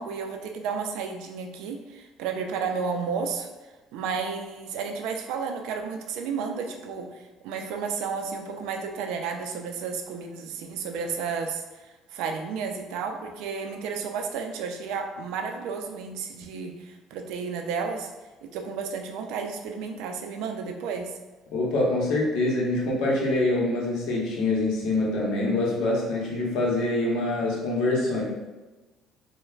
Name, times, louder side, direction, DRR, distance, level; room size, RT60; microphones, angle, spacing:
voice 1, 0.0-3.5 3.9-18.1 18.4-21.1, right 5 dB, 85° right, 4 dB, 0.3 m, -32 dB
voice 2, 21.5-28.2, left 2 dB, 80° left, -3 dB, 0.7 m, -25 dB
2.3 x 2.1 x 3.1 m, 1.2 s
cardioid pair, 105°, 0 cm